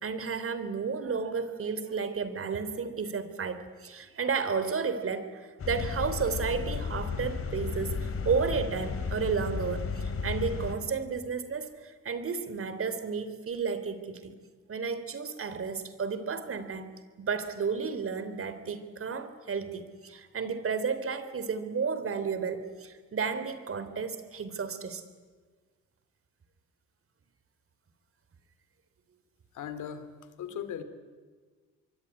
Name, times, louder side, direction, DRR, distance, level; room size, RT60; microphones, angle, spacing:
voice 1, 0.0-14.3 14.7-16.9 17.2-25.0, right 5 dB, 45° right, 12 dB, 3.3 m, -32 dB
sound 1, 5.6-10.8, left 5 dB, 50° left, 3.5 m, -34 dB
voice 2, 29.5-30.1 30.4-30.8, left 9 dB, 80° left, 11 dB, 2.9 m, -37 dB
25.0 x 23.0 x 9.6 m, 1.4 s
cardioid pair, 90°, 30 cm